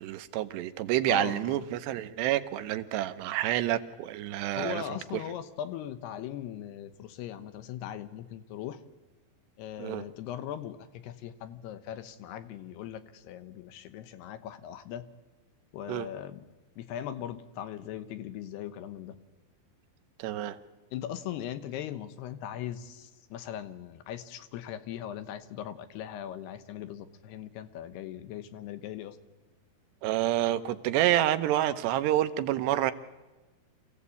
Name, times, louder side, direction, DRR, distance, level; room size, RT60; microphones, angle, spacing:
voice 1, 0.0-4.8 9.8-10.0 15.9-16.1 20.2-20.6 30.0-32.9, right 13 dB, 85° right, 10 dB, 3.1 m, -28 dB
voice 2, 1.1-1.7 4.6-8.8 9.6-15.1 15.7-16.5 16.8-19.2 20.9-29.2, left 10 dB, 80° left, 11 dB, 3.0 m, -39 dB
26.5 x 16.0 x 8.4 m, 1.2 s
omnidirectional pair, 4.8 m